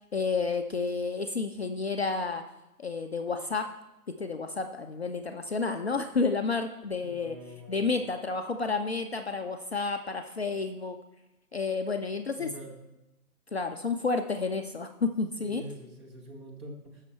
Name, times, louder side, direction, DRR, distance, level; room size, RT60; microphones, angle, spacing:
voice 1, 0.1-2.4 2.8-3.7 4.1-7.4 7.7-11.0 11.5-12.5 13.5-15.6, left 4 dB, 45° left, 6 dB, 0.6 m, -30 dB
voice 2, 7.0-8.1 12.4-12.8 15.4-17.0, equal, 15° right, 0 dB, 1.5 m, -45 dB
14.0 x 6.5 x 4.4 m, 0.95 s
figure-of-eight pair, 150°, 47 cm